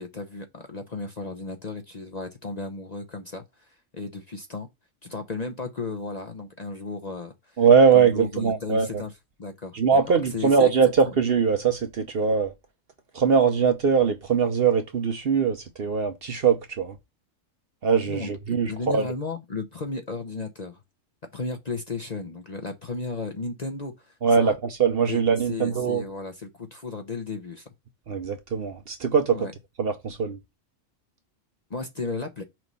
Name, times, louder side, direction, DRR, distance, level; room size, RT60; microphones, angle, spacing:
voice 1, 0.0-4.7 5.0-7.6 7.9-9.1 9.4-9.8 10.1-10.7 11.0-11.1 18.0-20.8 21.3-24.6 25.1-25.2 25.5-27.7 29.3-29.5 31.7-32.4, left 3 dB, 40° left, 0.7 m, -34 dB
voice 2, 7.6-9.0 9.7-12.5 13.1-17.0 17.8-19.0 24.2-24.5 24.8-26.0 28.1-29.5 29.8-30.4, right 6 dB, 50° right, 0.9 m, -21 dB
6.0 x 3.1 x 5.2 m
omnidirectional pair, 1.4 m